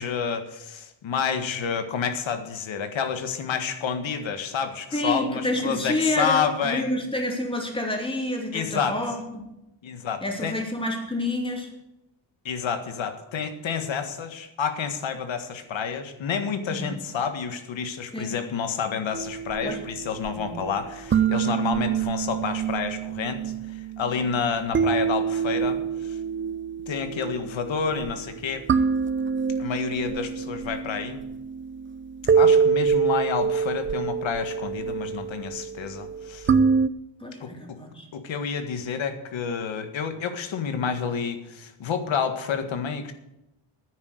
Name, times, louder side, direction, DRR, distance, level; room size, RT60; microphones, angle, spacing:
voice 1, 0.0-6.8 8.5-9.0 9.8-10.5 12.5-26.2 26.9-28.7 29.6-31.2 32.3-36.5 37.4-37.8 38.1-43.1, left 6 dB, 80° left, 8 dB, 1.7 m, -29 dB
voice 2, 4.9-9.5 10.2-11.7 16.7-17.0 18.1-18.3 19.6-19.8 20.4-20.7 37.2-38.1, left 1 dB, 10° left, 1 dB, 3.0 m, -29 dB
sound 1, 19.1-36.9, right 6 dB, 25° right, 0.5 m, -26 dB
10.0 x 9.6 x 8.1 m, 0.91 s
wide cardioid pair, 125°, 45 cm